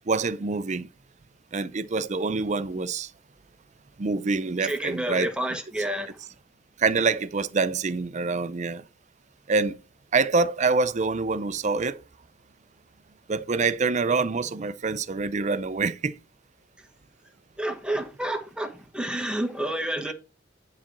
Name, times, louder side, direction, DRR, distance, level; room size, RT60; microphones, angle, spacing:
voice 1, 0.1-0.9 1.5-3.1 4.0-5.3 6.8-8.8 9.5-9.8 10.1-12.0 13.3-16.2 20.1-20.2, right 4 dB, 40° right, 0.5 m, -26 dB
voice 2, 4.6-6.2 16.8-16.9 17.6-20.1, right 1 dB, 5° right, 1.1 m, -30 dB
9.8 x 4.2 x 6.0 m
head